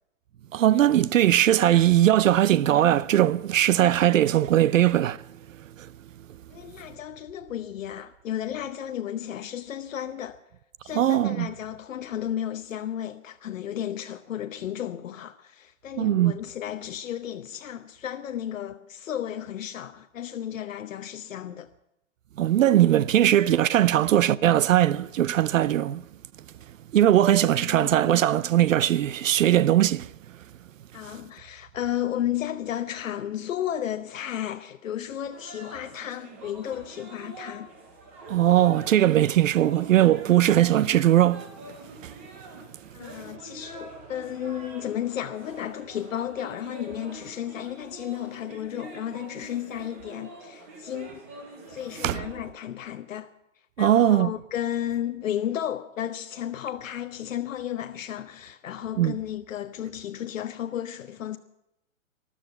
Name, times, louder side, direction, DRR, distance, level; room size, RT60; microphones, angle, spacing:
voice 1, 0.5-5.2 5.8-5.9 10.9-11.5 16.0-16.4 22.4-26.0 26.9-30.1 38.3-41.5 42.0-42.1 52.0-52.2 53.8-54.3 59.0-59.2, right 12 dB, 75° right, 0.6 m, -20 dB
voice 2, 6.5-10.4 10.8-21.7 27.6-28.1 30.9-37.7 42.9-51.2 51.7-53.3 53.8-61.4, left 11 dB, 70° left, 0.9 m, -33 dB
sound 1, 35.3-52.5, right 2 dB, 10° right, 0.6 m, -45 dB
13.5 x 12.5 x 8.2 m
hypercardioid pair, 175°, 40 cm